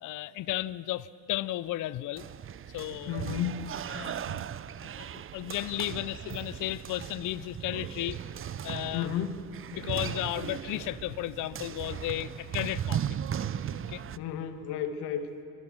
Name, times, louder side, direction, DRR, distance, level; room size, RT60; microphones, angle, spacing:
voice 1, 0.0-2.3 2.7-3.2 3.9-4.2 5.0-5.1 5.3-8.2 8.6-9.1 9.7-13.2 13.9-14.0, left 15 dB, 45° left, 17 dB, 0.6 m, -34 dB
sound 1, 2.2-14.2, right 9 dB, 30° right, 0.7 m, -37 dB
voice 2, 3.1-3.7 8.9-9.4 14.1-15.4, left 9 dB, 65° left, 7 dB, 1.8 m, -33 dB
25.5 x 22.5 x 6.2 m, 2.5 s
hypercardioid pair, 60°, 42 cm